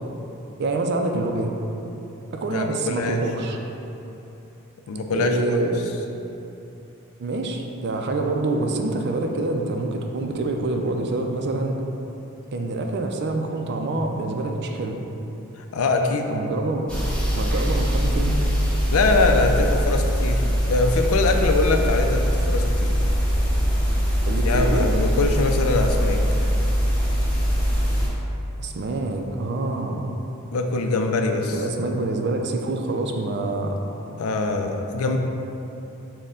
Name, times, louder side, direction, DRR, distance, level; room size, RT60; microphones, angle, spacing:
voice 1, 0.6-1.5 2.3-3.6 5.1-5.8 7.2-11.8 12.5-15.0 16.3-16.9 17.3-18.4 24.3-24.9 28.6-30.1 31.4-33.8 35.0-35.2, right 2 dB, 55° right, 3 dB, 0.4 m, -26 dB
voice 2, 2.5-3.2 4.9-5.7 15.7-16.3 18.9-22.9 24.5-26.2 30.5-31.6 34.2-35.2, left 3 dB, 85° left, 4 dB, 0.4 m, -23 dB
sound 1, 16.9-28.1, equal, 5° left, 0.9 m, -22 dB
6.5 x 2.2 x 3.7 m, 3.0 s
head